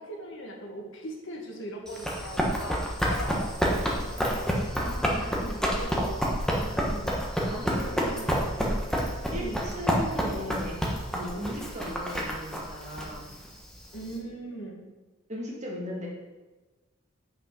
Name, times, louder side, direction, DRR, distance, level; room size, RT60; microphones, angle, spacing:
voice 1, 0.0-4.9 5.4-6.3 6.5-7.2 9.3-9.7 13.9-14.8, right 1 dB, 60° left, 1 dB, 1.5 m, -40 dB
Run, 1.9-14.1, equal, 5° left, 1.2 m, -29 dB
voice 2, 4.8-5.4 7.5-8.6 9.3-10.8 11.1-13.3 15.3-16.1, left 1 dB, 35° right, -3 dB, 2.1 m, -37 dB
8.2 x 6.2 x 4.7 m, 1.2 s
head